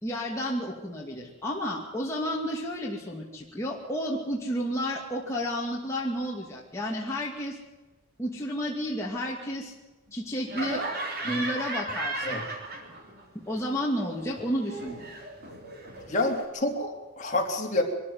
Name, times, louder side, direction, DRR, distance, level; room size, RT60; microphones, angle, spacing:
voice 1, 0.0-7.6 8.2-9.7 10.1-10.8 11.2-12.4 13.5-15.0, equal, 15° left, -3 dB, 2.4 m, -31 dB
Laughter, 10.5-13.3 13.5-16.4, right 2 dB, 45° right, 3.7 m, -36 dB
voice 2, 16.1-17.8, left 2 dB, 35° left, 1 dB, 3.5 m, -28 dB
23.5 x 14.0 x 9.6 m, 1.2 s
head